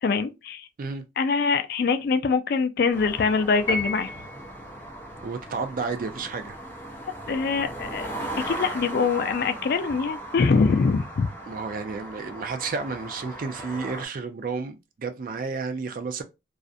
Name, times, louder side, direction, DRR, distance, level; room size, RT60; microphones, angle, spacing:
voice 1, 0.0-0.7 1.2-4.1 7.3-8.1 8.4-11.3, left 4 dB, 50° left, 0.3 m, -23 dB
sound 1, 2.9-14.1, right 1 dB, 10° left, 0.6 m, -38 dB
Piano, 3.7-4.6, left 2 dB, 30° left, 1.0 m, -30 dB
voice 2, 5.2-6.6 11.5-16.2, right 4 dB, 45° right, 0.4 m, -31 dB
2.4 x 2.1 x 2.5 m
head